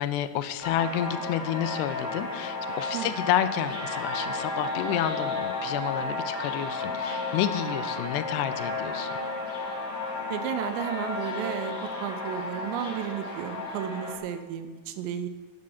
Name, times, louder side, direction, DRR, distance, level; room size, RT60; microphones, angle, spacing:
voice 1, 0.0-9.1, left 11 dB, 80° left, 11 dB, 2.7 m, -30 dB
sound 1, 0.6-14.2, left 2 dB, 40° left, 1.6 m, -33 dB
voice 2, 10.3-15.3, right 10 dB, 90° right, 10 dB, 2.9 m, -33 dB
12.5 x 11.0 x 5.7 m, 1.5 s
omnidirectional pair, 5.0 m